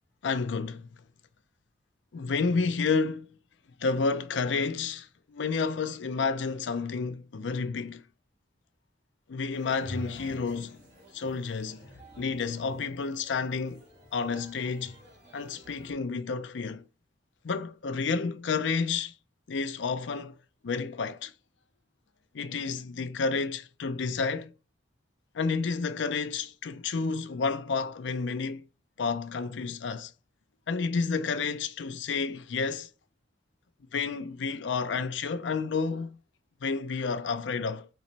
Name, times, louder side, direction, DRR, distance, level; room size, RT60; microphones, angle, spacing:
voice 1, 0.2-0.9 2.1-3.3 3.8-8.0 9.3-10.8 11.1-11.9 12.2-13.8 14.1-15.0 15.3-16.8 17.4-19.1 19.5-20.3 20.6-21.3 22.3-24.5 25.3-28.6 29.0-30.1 30.7-32.9 33.9-36.2 36.6-37.9, left 4 dB, 90° left, 0.5 m, -30 dB
sound 1, 9.5-15.9, equal, 35° right, 2.5 m, -48 dB
4.2 x 3.2 x 4.0 m
head